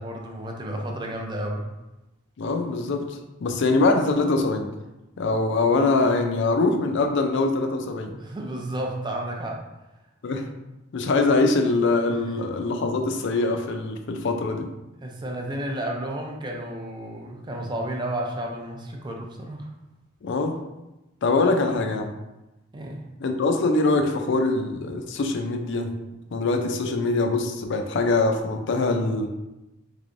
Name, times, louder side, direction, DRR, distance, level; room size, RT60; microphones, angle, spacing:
voice 1, 0.0-1.6 8.1-9.6 15.0-19.7 22.7-23.0, right 1 dB, 20° right, 0 dB, 0.5 m, -32 dB
voice 2, 2.4-4.7 5.2-8.1 10.2-10.5 10.9-14.7 20.2-20.6 21.2-22.1 23.2-25.9 26.3-29.3, left 3 dB, 60° left, 5 dB, 0.4 m, -23 dB
3.6 x 3.2 x 2.5 m, 0.98 s
head